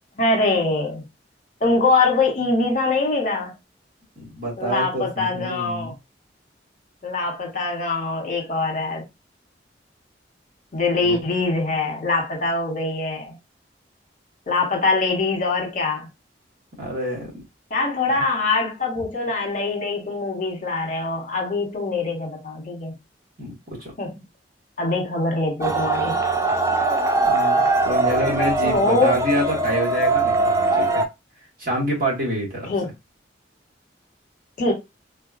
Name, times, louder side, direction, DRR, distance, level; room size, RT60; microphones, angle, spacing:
voice 1, 0.2-1.1 1.6-3.5 4.6-5.9 7.0-9.0 10.7-13.4 14.5-16.1 17.7-23.0 24.0-24.1 24.8-26.2 28.6-29.2 32.7-32.9 34.6-34.7, left 3 dB, 45° left, 1.0 m, -23 dB
voice 2, 4.2-5.9 11.0-11.2 16.8-17.4 18.1-18.2 23.4-23.9 27.3-31.0 31.6-32.7, right 1 dB, 55° right, 1.4 m, -27 dB
sound 1, 25.6-31.1, right 3 dB, 15° right, 0.3 m, -21 dB
3.4 x 2.2 x 2.4 m
head